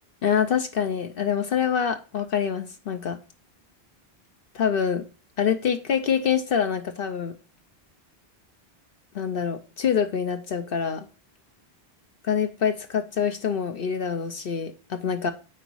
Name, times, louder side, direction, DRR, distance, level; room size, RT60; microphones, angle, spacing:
voice 1, 0.2-3.2 4.5-5.0 5.4-7.3 9.1-11.1 12.3-15.3, left 7 dB, 65° left, 0.9 m, -25 dB
9.0 x 4.0 x 4.6 m
omnidirectional pair, 1.0 m